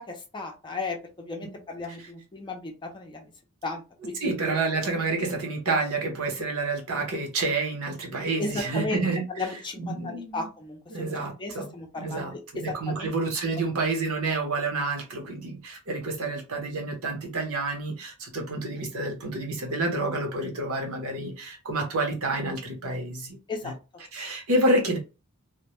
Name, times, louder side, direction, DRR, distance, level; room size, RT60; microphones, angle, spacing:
voice 1, 0.1-3.3 3.6-4.3 8.4-9.0 9.3-13.1 23.5-23.7, left 3 dB, 20° left, 0.5 m, -35 dB
voice 2, 4.2-9.5 9.8-10.5 10.9-11.7 12.0-23.4 23.6-23.7 24.1-25.0, right 2 dB, 70° right, 0.8 m, -29 dB
2.1 x 2.1 x 2.9 m
head